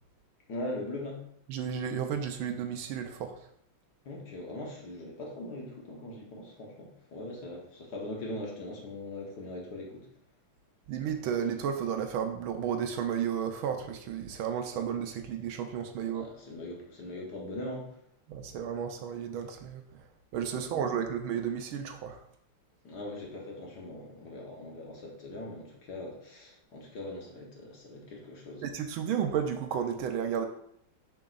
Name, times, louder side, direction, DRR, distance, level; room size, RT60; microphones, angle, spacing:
voice 1, 0.5-1.2 4.0-10.1 16.1-17.9 20.5-20.7 22.8-28.6, left 1 dB, 55° left, -1 dB, 1.5 m, -41 dB
voice 2, 1.5-3.3 10.9-16.3 18.3-19.8 20.3-22.2 28.6-30.5, right 8 dB, 75° right, 6 dB, 1.4 m, -32 dB
6.9 x 6.0 x 2.5 m, 0.68 s
omnidirectional pair, 2.4 m